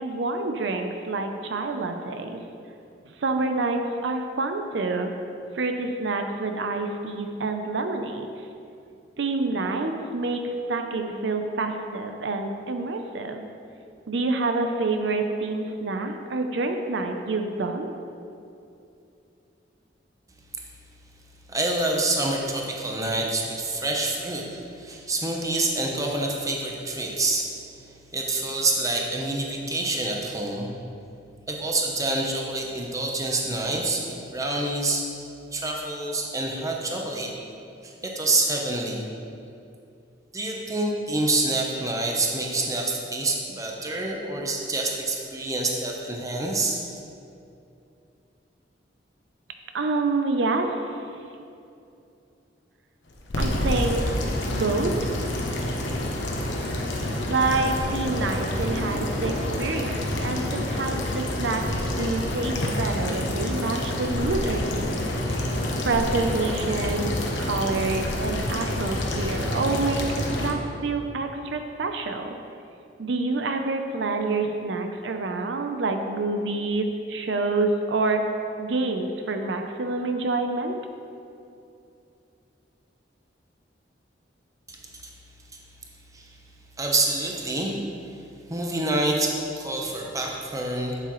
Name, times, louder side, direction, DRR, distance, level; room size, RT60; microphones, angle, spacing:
voice 1, 0.0-2.4 3.2-5.1 5.5-8.3 9.2-13.5 14.1-17.9 49.7-51.0 53.4-54.0 54.5-54.9 57.3-61.6 62.0-65.1 65.8-72.3 73.0-78.2 78.6-80.8, right 3 dB, 80° right, 5 dB, 0.6 m, -27 dB
voice 2, 21.5-27.5 27.8-30.7 31.5-35.1 35.5-37.3 37.8-39.1 40.3-46.8 84.7-84.8 85.0-85.1 85.5-85.6 86.1-86.3 86.8-87.8 88.1-88.2 88.5-91.0, right 2 dB, 20° right, 0 dB, 0.8 m, -27 dB
sound 1, 53.1-70.5, left 1 dB, 90° left, 1.0 m, -28 dB
8.2 x 8.0 x 3.1 m, 2.6 s
head